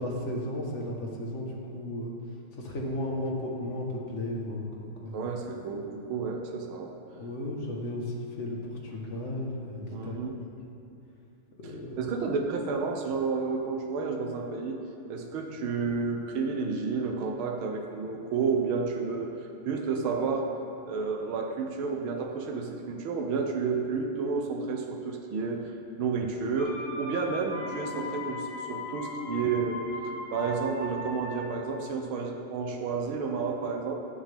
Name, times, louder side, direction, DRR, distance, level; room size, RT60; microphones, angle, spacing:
voice 1, 0.0-2.1 2.6-5.2 7.1-10.5 11.6-12.1, left 1 dB, 40° left, -1 dB, 1.7 m, -34 dB
voice 2, 5.1-6.9 9.9-10.4 11.6-14.8 15.1-19.3 19.7-20.5 20.8-25.7 26.0-33.9, right 4 dB, 85° right, 2 dB, 1.8 m, -31 dB
sound 1, 26.6-31.7, left 1 dB, 80° left, 2.6 m, -38 dB
19.0 x 7.6 x 3.6 m, 2.7 s
omnidirectional pair, 2.2 m